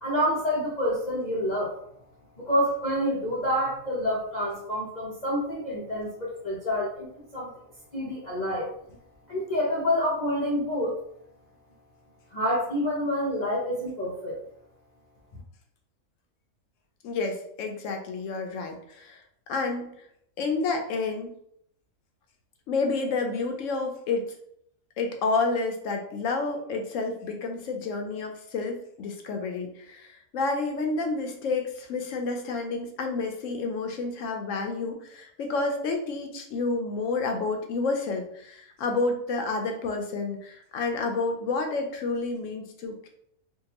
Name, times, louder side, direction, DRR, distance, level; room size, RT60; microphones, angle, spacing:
voice 1, 0.0-1.8 2.4-7.1 7.3-7.5 7.9-8.7 9.3-10.9 12.3-14.4 15.3-15.4, equal, 50° left, -5 dB, 0.5 m, -27 dB
voice 2, 17.0-19.2 19.5-19.9 20.4-21.3 22.7-24.3 25.0-43.1, left 3 dB, 70° left, 3 dB, 0.9 m, -29 dB
3.5 x 2.3 x 2.8 m, 0.70 s
omnidirectional pair, 1.5 m